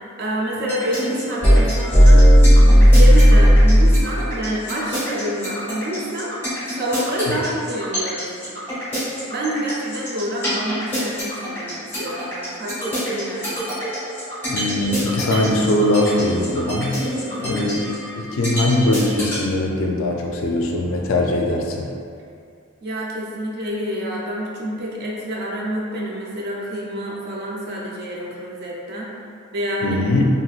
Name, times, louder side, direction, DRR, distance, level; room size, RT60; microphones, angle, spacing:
voice 1, 0.2-2.3 2.8-6.3 6.8-8.6 9.3-13.6 17.2-17.6 22.8-29.1 29.5-30.0, equal, 50° right, -4 dB, 0.5 m, -27 dB
sound 1, 0.7-19.3, equal, 10° left, 1.4 m, -15 dB
voice 2, 14.5-17.0 17.4-17.9 18.2-21.9 29.8-30.3, left 1 dB, 70° left, 0 dB, 0.4 m, -21 dB
3.0 x 2.8 x 2.3 m, 2.3 s
head